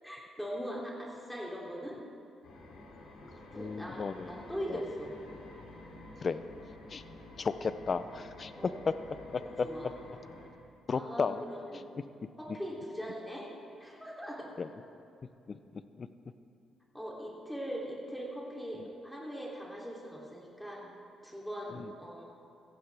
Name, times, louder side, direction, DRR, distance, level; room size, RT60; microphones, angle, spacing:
voice 1, 0.0-2.0 3.3-5.1 8.6-8.9 9.4-9.9 10.9-11.8 12.4-13.5 13.8-14.5 16.9-20.9 21.2-22.3, equal, 5° left, -3 dB, 3.0 m, -41 dB
sound 1, 2.4-10.5, left 2 dB, 70° left, 2.8 m, -50 dB
voice 2, 3.5-4.4 4.7-4.8 6.2-6.4 6.9-7.0 7.4-9.7 10.9-11.4 14.6-14.7 15.5-16.1 21.7-21.9, left 5 dB, 40° left, 12 dB, 0.6 m, -34 dB
15.5 x 15.0 x 3.5 m, 2.5 s
cardioid pair, 90°, 0 cm